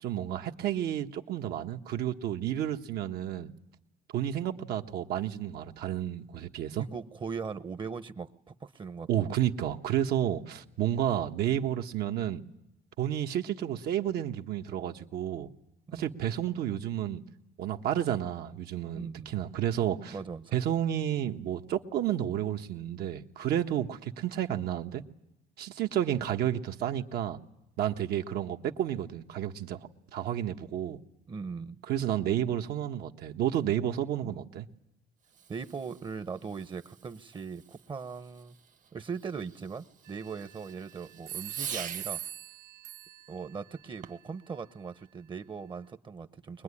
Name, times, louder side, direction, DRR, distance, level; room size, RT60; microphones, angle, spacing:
voice 1, 0.0-3.5 4.1-6.8 9.1-12.4 13.0-15.5 15.9-17.2 17.6-20.2 20.5-25.0 25.6-27.4 27.8-29.8 30.1-31.0 31.9-34.7, right 11 dB, 70° right, 1.4 m, -31 dB
voice 2, 6.8-9.4 15.9-16.0 18.9-19.3 20.1-20.6 31.3-31.8 34.2-34.5 35.5-38.6 38.9-42.2 43.3-46.6, right 5 dB, 30° right, 0.9 m, -40 dB
Fireworks, 35.2-42.3 43.9-44.4, right 7 dB, 45° right, 1.2 m, -47 dB
sound 1, 40.1-40.7 41.3-43.4, right 11 dB, 90° right, 1.1 m, -40 dB
22.5 x 21.0 x 9.9 m
cardioid pair, 110°, 17 cm